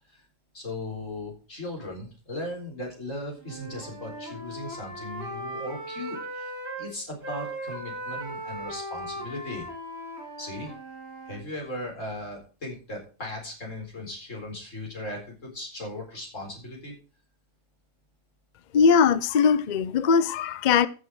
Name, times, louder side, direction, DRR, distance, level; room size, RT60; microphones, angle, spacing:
voice 1, 0.5-9.7 10.4-10.7 11.2-16.9, left 1 dB, 70° left, 4.6 m, -37 dB
Wind instrument woodwind instrument, 3.4-6.9 7.2-11.4, right 1 dB, 40° right, 4.9 m, -38 dB
voice 2, 18.7-20.9, left 6 dB, 55° left, 0.5 m, -20 dB
14.0 x 6.6 x 4.7 m
omnidirectional pair, 1.4 m